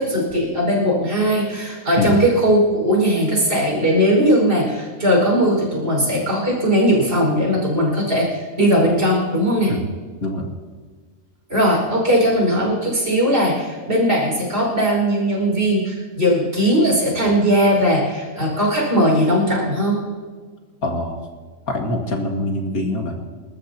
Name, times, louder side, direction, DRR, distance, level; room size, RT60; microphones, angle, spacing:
voice 1, 0.0-9.7 11.5-20.0, equal, 45° right, -1 dB, 5.5 m, -18 dB
voice 2, 20.8-21.2 21.7-23.2, left 1 dB, 75° left, 1 dB, 2.5 m, -24 dB
29.0 x 14.0 x 2.9 m, 1.5 s
omnidirectional pair, 1.5 m